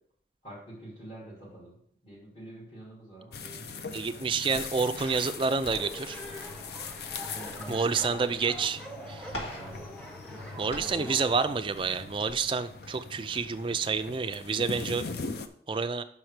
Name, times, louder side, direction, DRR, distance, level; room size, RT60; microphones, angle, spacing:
voice 1, 0.4-1.8 2.0-4.2 7.3-8.1 9.3-10.0 10.2-11.4, right 1 dB, 35° left, -8 dB, 2.7 m, -47 dB
sound 1, 3.3-15.5, left 4 dB, 65° left, 0.6 m, -41 dB
voice 2, 3.9-6.2 7.7-8.8 9.1-9.3 10.6-15.0 15.7-16.0, right 5 dB, 30° right, 9 dB, 0.4 m, -29 dB
sound 2, 4.2-4.3 4.5-8.8 9.0-11.1 11.5-12.9 13.2-13.4 13.9-14.0, equal, 90° left, 2.4 m, -45 dB
sound 3, 5.8-11.3, equal, 5° left, 0.9 m, -44 dB
5.9 x 4.5 x 6.5 m, 0.63 s
head